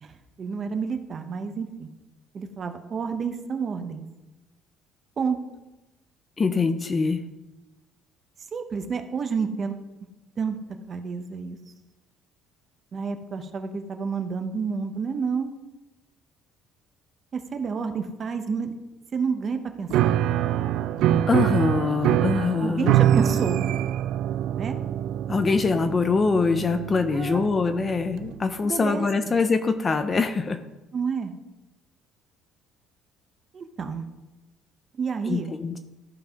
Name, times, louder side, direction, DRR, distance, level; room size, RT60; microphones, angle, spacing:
voice 1, 0.0-1.9 2.3-4.1 5.2-5.4 8.5-9.8 10.4-10.6 10.9-11.6 12.9-15.5 17.3-18.7 19.1-20.2 22.6-23.7 24.6-24.8 27.1-27.4 28.6-29.3 30.9-31.3 33.5-34.0 35.0-35.5, right 5 dB, 25° right, 7 dB, 0.7 m, -29 dB
voice 2, 6.4-7.2 21.3-22.9 25.3-30.6 35.3-35.8, left 4 dB, 20° left, 9 dB, 0.4 m, -23 dB
Piano, 19.9-28.4, right 11 dB, 55° right, 0.3 m, -25 dB
14.0 x 5.4 x 3.5 m, 1.0 s
cardioid pair, 180°, 0 cm